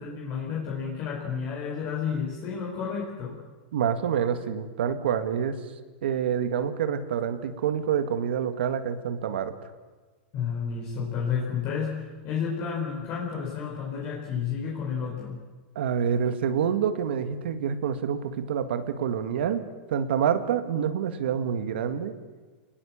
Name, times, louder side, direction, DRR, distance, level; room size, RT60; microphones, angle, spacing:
voice 1, 0.0-3.4 10.3-15.4, left 6 dB, 40° left, -2 dB, 4.2 m, -31 dB
voice 2, 3.7-5.6 6.0-9.5 15.8-19.6 19.9-22.1, right 8 dB, 85° right, 9 dB, 1.9 m, -27 dB
26.5 x 20.0 x 7.3 m, 1.4 s
supercardioid pair, 150°, 6 cm